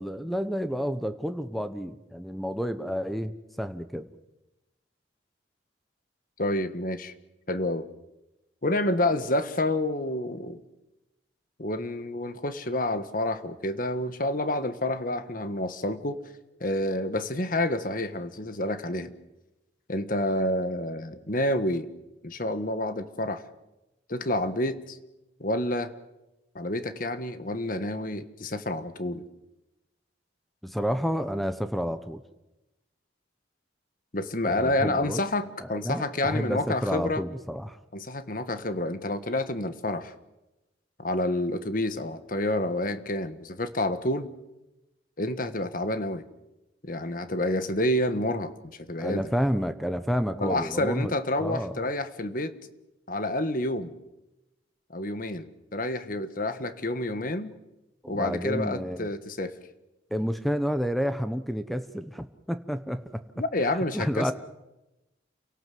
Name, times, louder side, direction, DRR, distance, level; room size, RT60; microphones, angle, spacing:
voice 1, 0.0-4.1 30.6-32.2 34.4-35.2 35.6-37.8 49.0-51.1 51.4-51.8 58.0-59.1 60.1-63.2 63.9-64.3, equal, ahead, 10 dB, 0.9 m, -30 dB
voice 2, 6.4-7.1 7.5-7.9 8.6-10.6 11.6-16.2 16.6-19.1 19.9-21.9 22.2-23.4 24.1-25.0 25.4-25.9 26.5-29.2 34.1-37.2 37.9-40.1 41.0-44.3 45.2-46.2 46.8-48.5 48.9-49.3 50.4-52.5 53.1-53.9 54.9-55.5 55.7-57.5 58.1-59.5 63.4-64.3, left 1 dB, 45° left, 10 dB, 1.5 m, -29 dB
29.0 x 18.0 x 7.8 m, 0.98 s
head